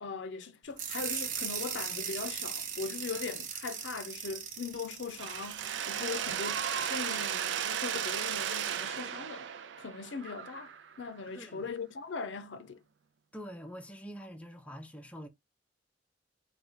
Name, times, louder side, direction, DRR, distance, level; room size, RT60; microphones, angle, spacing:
voice 1, 0.0-9.5 9.8-12.8, left 4 dB, 70° left, 0.5 m, -40 dB
sound 1, 0.8-6.6, right 7 dB, 45° right, 0.8 m, -39 dB
Mechanisms, 5.2-11.0, right 9 dB, 70° right, 0.4 m, -35 dB
voice 2, 11.3-11.7 13.3-15.3, equal, 5° left, 0.6 m, -45 dB
4.4 x 2.3 x 3.9 m
head